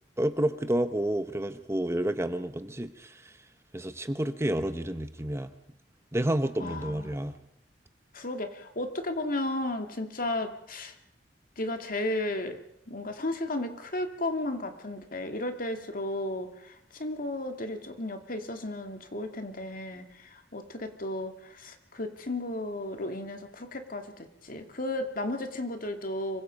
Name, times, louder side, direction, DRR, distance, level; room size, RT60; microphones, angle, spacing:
voice 1, 0.2-3.4 3.7-5.5 6.1-7.4, right 1 dB, 15° right, 10 dB, 0.9 m, -30 dB
voice 2, 6.6-7.2 8.1-10.9 11.6-12.6 12.9-26.4, left 1 dB, 50° left, 6 dB, 2.5 m, -34 dB
26.0 x 23.5 x 5.4 m, 0.77 s
head